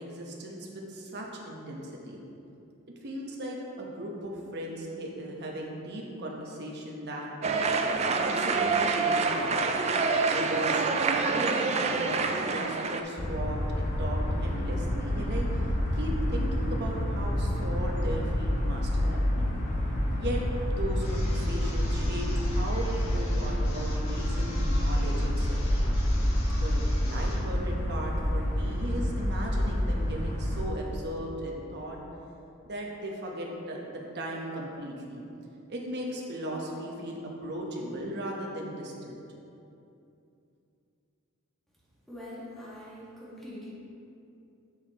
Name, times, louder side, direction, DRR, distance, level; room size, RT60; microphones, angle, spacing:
voice 1, 0.0-2.2 3.0-7.7 8.0-9.8 10.3-15.5 15.9-19.5 20.2-25.6 26.5-32.0 32.6-35.2 35.7-39.2, right 1 dB, 50° right, -1 dB, 1.0 m, -37 dB
sound 1, 7.4-13.0, right 4 dB, 30° right, 0.3 m, -26 dB
sound 2, 13.2-30.6, left 1 dB, 35° left, 0.8 m, -28 dB
sound 3, 21.0-27.5, left 1 dB, 65° left, 1.1 m, -45 dB
voice 2, 42.1-43.7, left 1 dB, ahead, -8 dB, 1.6 m, -43 dB
7.2 x 6.5 x 3.0 m, 2.7 s
head